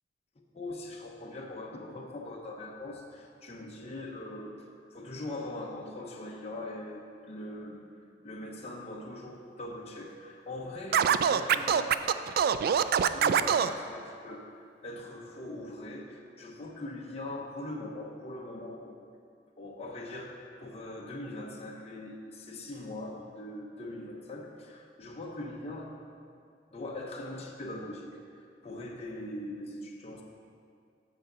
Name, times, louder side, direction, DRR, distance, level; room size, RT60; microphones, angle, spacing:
voice 1, 0.5-4.5 4.9-12.0 13.1-14.5 14.8-19.0 19.6-25.9 26.7-28.1 28.4-30.2, left 1 dB, 35° left, -1 dB, 0.9 m, -41 dB
Scratching (performance technique), 10.9-13.7, right 8 dB, 55° right, 0.3 m, -24 dB
14.0 x 5.8 x 3.9 m, 2.4 s
head